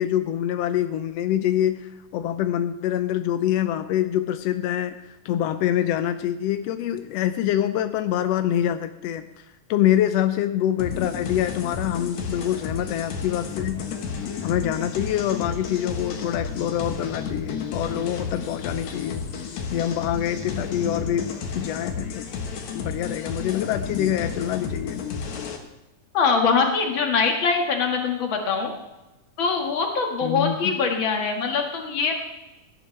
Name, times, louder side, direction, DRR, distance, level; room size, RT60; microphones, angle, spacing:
voice 1, 0.0-5.0 5.2-9.2 9.7-13.8 14.4-19.2 19.7-22.2 22.7-25.0 30.2-30.8, left 11 dB, 90° left, 9 dB, 1.4 m, -25 dB
sound 1, 10.8-25.6, left 5 dB, 65° left, 2.4 m, -32 dB
voice 2, 26.1-28.7 29.4-32.2, left 5 dB, 45° left, 2 dB, 2.1 m, -23 dB
17.0 x 11.0 x 3.3 m, 0.99 s
omnidirectional pair, 3.6 m